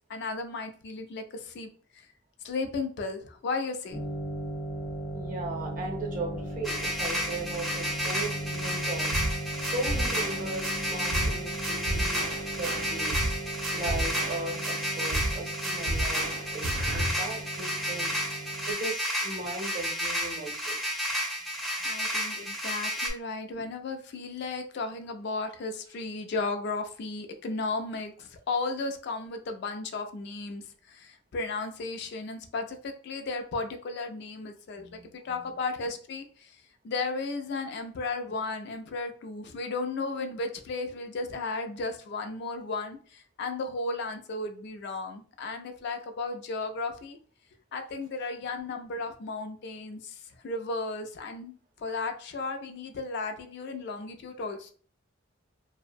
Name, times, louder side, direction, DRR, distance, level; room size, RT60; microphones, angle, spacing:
voice 1, 0.1-2.1 2.4-4.0 21.8-36.6 36.8-47.2 47.7-54.7, left 3 dB, 60° left, 6 dB, 0.4 m, -35 dB
sound 1, 3.9-18.7, right 1 dB, 80° left, 0.7 m, -38 dB
voice 2, 5.1-9.1 9.6-18.1 18.7-20.8 21.8-21.9 34.7-35.6, right 2 dB, 45° right, 1 dB, 0.6 m, -37 dB
sound 2, 6.6-23.1, equal, ahead, 0.4 m, -32 dB
sound 3, 9.1-9.4 9.6-10.7 11.1-11.4 11.6-13.4 13.6-14.7 15.1-15.4 15.6-17.1, right 1 dB, 90° right, 0.5 m, -32 dB
2.4 x 2.0 x 2.5 m, 0.43 s
head